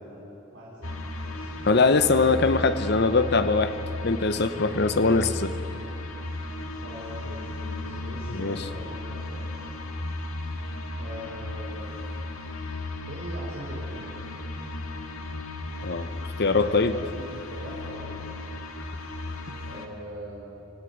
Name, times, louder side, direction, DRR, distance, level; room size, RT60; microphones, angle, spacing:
voice 1, 0.1-0.9 1.2-1.5 6.6-9.5 11.0-11.9 12.4-14.0 16.4-18.4 19.6-20.4, right 1 dB, 55° right, -6 dB, 4.2 m, -42 dB
sound 1, 0.8-19.9, left 2 dB, 90° left, 2.1 m, -35 dB
voice 2, 1.6-3.7 4.0-5.5 8.3-8.6 15.8-17.0 19.5-19.6, left 3 dB, 50° left, 11 dB, 0.9 m, -22 dB
25.5 x 16.0 x 9.6 m, 2.8 s
head